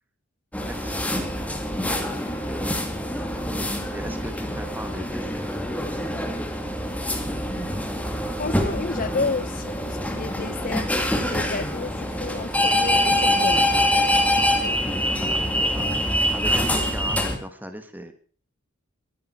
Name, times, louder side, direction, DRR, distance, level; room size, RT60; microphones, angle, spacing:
sound 1, 0.5-17.4, left 1 dB, 5° left, 2.2 m, -25 dB
voice 1, 0.7-1.3 1.8-2.9 3.9-5.6 14.6-18.1, right 1 dB, 10° right, 1.7 m, -38 dB
voice 2, 8.3-13.7, left 3 dB, 45° left, 1.0 m, -31 dB
22.5 x 11.0 x 4.5 m
head